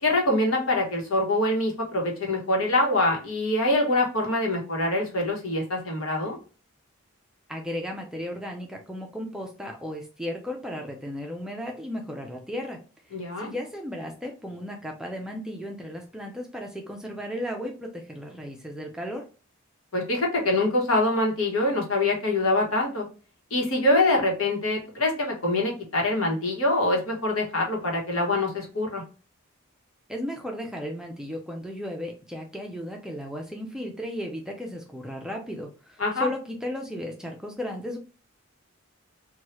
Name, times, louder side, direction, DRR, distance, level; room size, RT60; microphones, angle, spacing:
voice 1, 0.0-6.4 13.1-13.5 19.9-23.1 23.5-29.0 36.0-36.3, left 2 dB, 70° left, 0 dB, 1.1 m, -24 dB
voice 2, 7.5-12.8 13.1-19.2 30.1-38.0, left 1 dB, 5° right, 1 dB, 0.4 m, -35 dB
3.1 x 2.3 x 2.9 m, 0.36 s
head